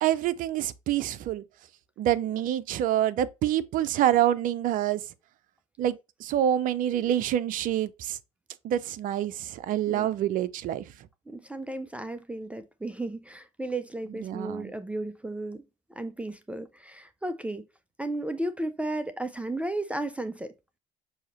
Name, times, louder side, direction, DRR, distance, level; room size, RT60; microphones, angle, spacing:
voice 1, 0.0-1.4 2.0-5.0 5.8-8.2 8.6-10.9 14.2-14.7, right 11 dB, 55° right, 0.6 m, -27 dB
voice 2, 11.3-15.6 15.9-17.7 18.0-20.5, right 1 dB, 5° right, 0.5 m, -34 dB
6.3 x 2.8 x 2.9 m
hypercardioid pair, 75°, 17 cm